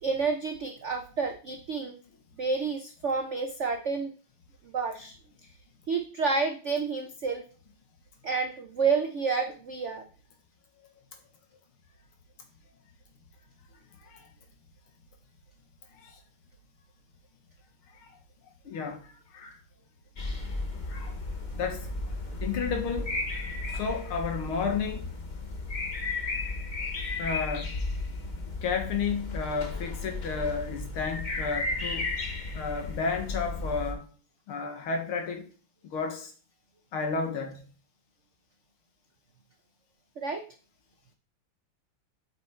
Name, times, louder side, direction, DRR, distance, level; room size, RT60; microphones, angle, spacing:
voice 1, 0.0-2.0 2.4-4.1 4.6-5.1 5.9-7.4 8.2-10.0 40.2-40.4, right 4 dB, 85° right, 0.6 m, -29 dB
voice 2, 18.7-19.6 20.9-21.2 21.6-21.9 22.4-23.2 23.7-25.0 27.2-27.7 28.6-32.1 32.5-34.1 34.5-35.4 35.8-36.3 36.9-37.7, left 5 dB, 85° left, 2.2 m, -32 dB
sound 1, 20.2-33.9, left 3 dB, 35° left, 0.8 m, -34 dB
8.2 x 5.1 x 4.4 m
omnidirectional pair, 2.3 m